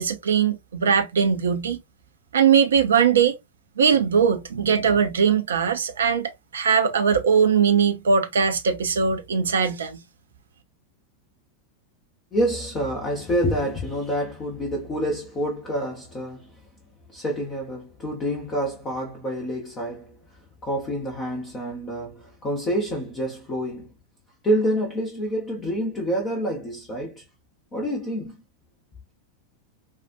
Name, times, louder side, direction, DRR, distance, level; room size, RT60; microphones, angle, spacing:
voice 1, 0.0-1.8 2.3-3.4 3.8-10.0, right 6 dB, 65° right, 0.7 m, -20 dB
voice 2, 12.3-16.6 17.1-23.9 24.4-27.2 27.7-28.4, equal, 20° left, 1.1 m, -27 dB
5.4 x 2.5 x 2.6 m
figure-of-eight pair, 90°, 0 cm